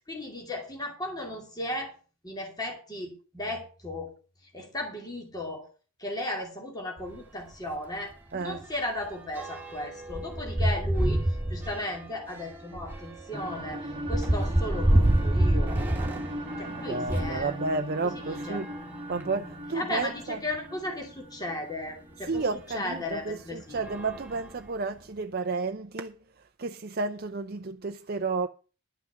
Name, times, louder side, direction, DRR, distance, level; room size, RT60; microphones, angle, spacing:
voice 1, 0.1-1.9 2.2-4.1 4.5-5.7 6.0-11.2 11.5-15.7 16.6-17.6 18.0-18.6 19.7-22.5 22.7-23.9, left 1 dB, 15° left, 2.6 m, -35 dB
sound 1, 7.0-7.2 7.5-7.6 8.0-17.4 18.2-19.5 20.2-20.3 20.5-20.6 22.3-22.5 23.1-23.3 23.7-25.0, right 1 dB, 10° right, 1.9 m, -29 dB
voice 2, 8.3-8.6 16.7-18.7 19.1-20.4 22.3-28.5, right 3 dB, 45° right, 0.6 m, -32 dB
sound 2, 13.3-22.7, equal, 25° right, 1.8 m, -39 dB
12.0 x 6.0 x 7.9 m
head